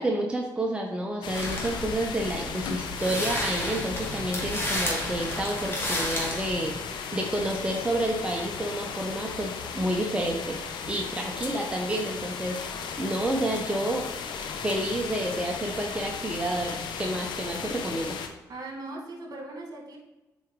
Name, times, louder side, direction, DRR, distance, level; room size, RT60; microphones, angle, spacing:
voice 1, 0.0-6.7 7.1-12.6 13.0-14.0 14.5-18.2, right 1 dB, 15° right, 0 dB, 1.0 m, -29 dB
sound 1, 1.2-18.3, left 6 dB, 75° left, 0.7 m, -36 dB
sound 2, 1.3-6.7, left 1 dB, 30° left, 2.3 m, -32 dB
voice 2, 18.5-20.0, right 2 dB, 50° right, 0 dB, 2.0 m, -39 dB
7.7 x 4.5 x 3.2 m, 1.1 s
supercardioid pair, 55°, 8 cm